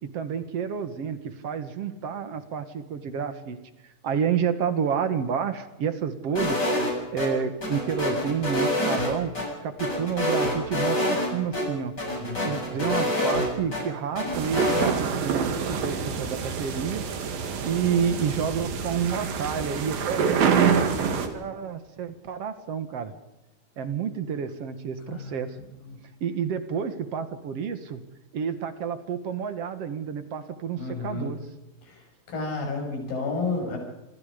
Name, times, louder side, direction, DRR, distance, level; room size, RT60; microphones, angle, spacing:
voice 1, 0.0-3.6 3.8-9.3 9.6-11.9 12.4-17.0 17.7-23.1 23.8-25.6 26.2-28.0 28.3-31.4, right 7 dB, 55° right, 9 dB, 2.2 m, -30 dB
sound 1, 6.4-7.3 7.6-9.4 9.8-11.3 11.5-11.6 12.0-13.8 14.2-14.9, left 1 dB, 25° left, 7.9 m, -26 dB
voice 2, 12.3-12.8 25.1-25.3 30.8-31.3 32.3-33.8, left 3 dB, 75° left, 1 dB, 8.4 m, -31 dB
sound 2, 14.3-21.3, right 6 dB, 80° right, 4.0 m, -27 dB
27.5 x 23.0 x 5.2 m, 1.0 s
omnidirectional pair, 4.0 m